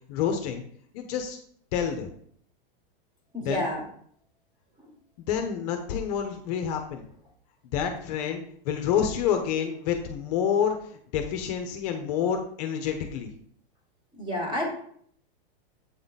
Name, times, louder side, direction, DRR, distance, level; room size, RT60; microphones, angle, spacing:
voice 1, 0.1-0.6 0.9-1.4 1.7-2.1 3.4-3.7 5.3-7.0 7.7-10.8 11.1-13.3, left 8 dB, 40° left, 5 dB, 0.7 m, -28 dB
voice 2, 3.3-3.8 14.2-14.7, left 1 dB, 15° right, 2 dB, 1.4 m, -29 dB
7.9 x 3.8 x 4.0 m, 0.63 s
supercardioid pair, 160°, 31 cm